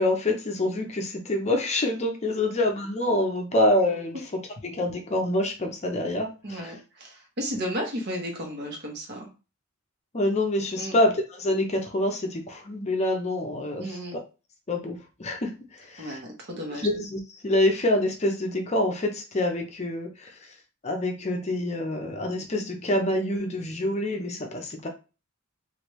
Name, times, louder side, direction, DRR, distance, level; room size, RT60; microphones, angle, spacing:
voice 1, 0.0-6.7 10.1-14.2 14.7-16.2 16.7-20.5 20.8-24.9, left 1 dB, 30° left, 3 dB, 0.6 m, -26 dB
voice 2, 6.4-9.3 10.8-11.0 13.8-14.2 16.0-16.9, equal, 50° right, 1 dB, 1.1 m, -33 dB
3.1 x 2.5 x 3.1 m, 0.31 s
head